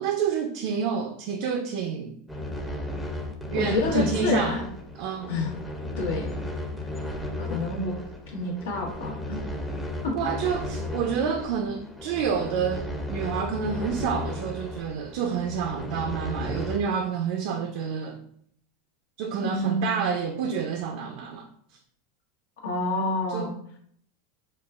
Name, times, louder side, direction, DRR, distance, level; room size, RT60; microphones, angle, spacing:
voice 1, 0.0-2.2 3.5-4.6 5.0-5.3 10.1-18.2 19.2-21.5 23.3-23.5, right 6 dB, 60° right, 4 dB, 0.4 m, -28 dB
sound 1, 2.3-16.8, left 1 dB, 5° left, 0.5 m, -34 dB
voice 2, 3.5-4.7 5.3-5.5 6.0-6.3 7.4-8.0 8.3-9.5 10.0-10.1 19.4-20.0 22.6-23.5, left 2 dB, 85° left, -1 dB, 1.2 m, -28 dB
5.3 x 2.3 x 2.4 m, 0.64 s
supercardioid pair, 145°, 0 cm